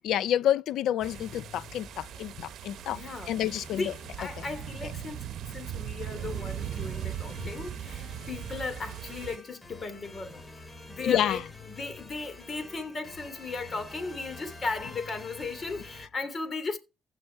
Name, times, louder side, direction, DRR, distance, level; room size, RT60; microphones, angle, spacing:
voice 1, 0.0-3.0 3.3-3.9 4.4-4.5 7.4-7.5 11.0-11.4, left 11 dB, 80° left, 0.6 m, -28 dB
sound 1, 1.0-16.1, left 3 dB, 25° left, 2.6 m, -48 dB
sound 2, 1.0-9.4, right 11 dB, 75° right, 0.8 m, -39 dB
voice 2, 2.9-3.3 3.7-5.2 5.5-10.5 10.9-16.8, left 4 dB, 40° left, 3.2 m, -36 dB
16.0 x 6.6 x 4.7 m
cardioid pair, 90°, 0 cm